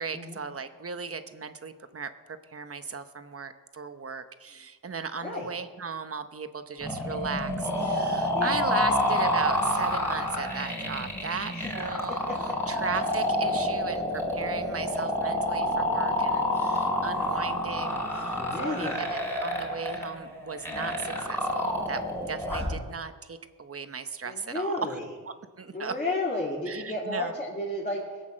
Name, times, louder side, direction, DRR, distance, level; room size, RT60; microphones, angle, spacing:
voice 1, 0.0-12.2 12.7-22.0 22.3-25.0 25.6-26.0 26.7-27.3, right 5 dB, 35° right, 9 dB, 0.9 m, -36 dB
sound 1, 6.8-22.8, left 1 dB, 5° left, 3.8 m, -28 dB
voice 2, 12.1-12.6 18.4-19.1 22.7-22.8 24.2-25.0 25.7-28.2, left 2 dB, 20° left, -5 dB, 2.7 m, -32 dB
21.5 x 8.3 x 6.4 m, 1.4 s
wide cardioid pair, 135°, 39 cm